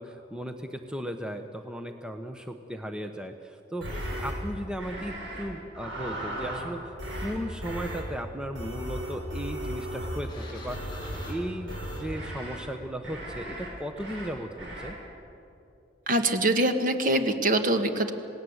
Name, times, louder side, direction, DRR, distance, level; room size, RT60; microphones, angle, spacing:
voice 1, 0.0-3.9 4.2-6.9 7.2-10.9 11.3-15.0, equal, 5° right, 6 dB, 1.0 m, -36 dB
sound 1, 3.8-4.3 4.8-5.4 5.7-6.7 7.0-7.3 7.6-8.0 8.6-10.3 10.7-11.3 11.7-12.6 13.0-13.7 14.0-14.3 14.6-14.9, equal, 90° right, 7.5 m, -36 dB
Sliding door, 10.2-13.0, left 1 dB, 25° left, 6.9 m, -46 dB
voice 2, 16.1-18.1, right 1 dB, 45° right, 7 dB, 1.6 m, -24 dB
27.5 x 18.5 x 8.0 m, 2.7 s
head